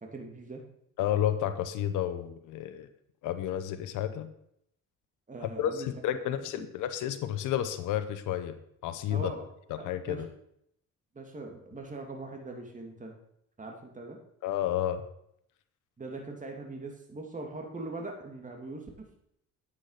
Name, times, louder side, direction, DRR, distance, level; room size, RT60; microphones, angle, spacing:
voice 1, 0.0-0.6 5.3-5.9 6.4-6.7 9.1-9.4 10.1-10.2 11.1-13.1 13.6-14.2 16.0-19.1, right 3 dB, 25° right, 1 dB, 2.7 m, -41 dB
voice 2, 1.0-2.9 3.2-4.3 5.4-8.6 8.8-9.3 9.7-10.3 14.4-15.0, left 11 dB, 90° left, 10 dB, 1.0 m, -31 dB
9.9 x 8.4 x 5.7 m, 0.73 s
cardioid pair, 90°, 30 cm